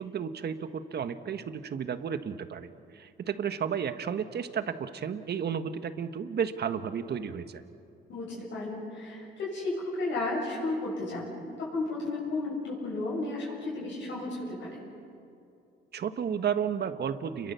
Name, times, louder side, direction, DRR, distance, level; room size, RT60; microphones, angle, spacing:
voice 1, 0.0-7.6 8.3-8.4 15.9-17.5, right 7 dB, 55° right, 10 dB, 1.4 m, -33 dB
voice 2, 8.1-14.8, left 2 dB, 70° left, -5 dB, 7.6 m, -33 dB
29.5 x 22.5 x 7.0 m, 2.6 s
cardioid pair, 90°, 20 cm